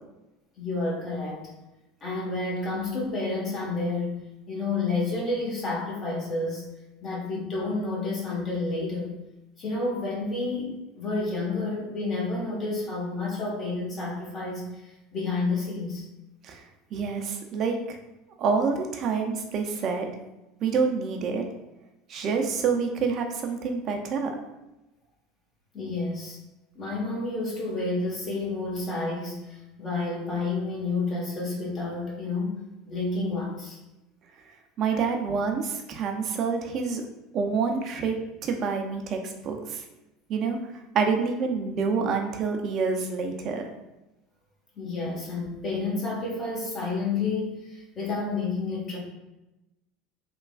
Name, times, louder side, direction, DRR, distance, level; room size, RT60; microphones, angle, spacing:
voice 1, 0.6-1.5 2.0-4.2 4.5-6.6 7.0-9.1 9.6-16.0 25.7-26.4 26.7-33.8 34.9-35.0 44.8-49.0, left 3 dB, 40° left, -3 dB, 1.1 m, -30 dB
voice 2, 16.9-18.0 18.4-20.1 20.6-21.4 22.1-24.3 34.8-37.0 37.3-38.1 38.4-39.8 40.3-40.6 40.9-43.7, right 5 dB, 50° right, 3 dB, 0.5 m, -27 dB
3.3 x 2.2 x 2.3 m, 0.97 s
hypercardioid pair, 80°, 0 cm